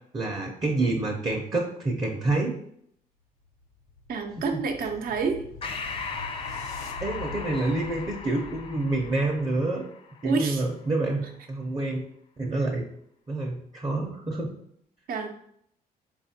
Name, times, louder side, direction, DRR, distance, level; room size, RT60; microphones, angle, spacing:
voice 1, 0.1-2.6 4.5-4.6 7.0-9.8 10.2-11.2 11.5-12.0 12.4-12.8 13.3-14.5, right 2 dB, 25° right, 0 dB, 0.6 m, -27 dB
sound 1, 3.2-9.6, left 2 dB, 85° left, 1.0 m, -44 dB
voice 2, 4.1-5.4 10.2-10.6 15.1-15.3, right 4 dB, 70° right, 5 dB, 0.6 m, -28 dB
Breathing, 5.6-10.5, left 5 dB, 35° left, 0.5 m, -38 dB
4.9 x 2.4 x 2.7 m, 0.69 s
cardioid pair, 100°, 16 cm